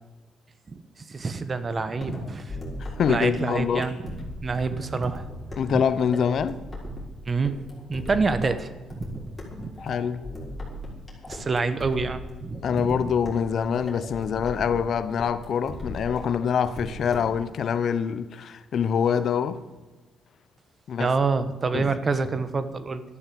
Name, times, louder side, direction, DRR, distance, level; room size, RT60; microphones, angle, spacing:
voice 1, 1.1-2.6 3.1-4.0 4.4-5.2 5.7-5.8 7.3-7.5 7.9-9.0 9.6-9.7 11.3-13.0 21.0-23.0, right 4 dB, 35° right, 1.3 m, -27 dB
sound 1, 2.0-17.4, left 1 dB, 20° left, 6.1 m, -38 dB
voice 2, 2.8-3.9 5.6-6.6 9.8-10.2 12.6-19.6 20.9-21.1 21.7-21.8, left 7 dB, 60° left, 0.9 m, -25 dB
12.5 x 11.5 x 7.8 m
cardioid pair, 90°, 0 cm